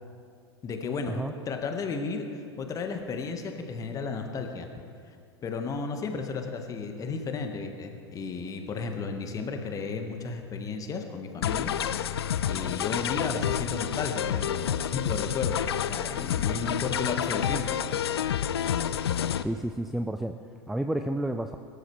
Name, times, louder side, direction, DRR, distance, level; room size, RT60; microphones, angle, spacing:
voice 1, 0.6-1.2 1.5-4.7 5.1-5.2 5.4-11.7 12.5-17.8, left 4 dB, 25° left, 5 dB, 1.6 m, -33 dB
sound 1, 11.4-19.4, left 9 dB, 65° left, 0.6 m, -29 dB
voice 2, 19.4-20.4 20.7-21.6, right 1 dB, ahead, 7 dB, 0.4 m, -30 dB
21.5 x 13.5 x 3.4 m, 2.4 s
figure-of-eight pair, 90°, 14 cm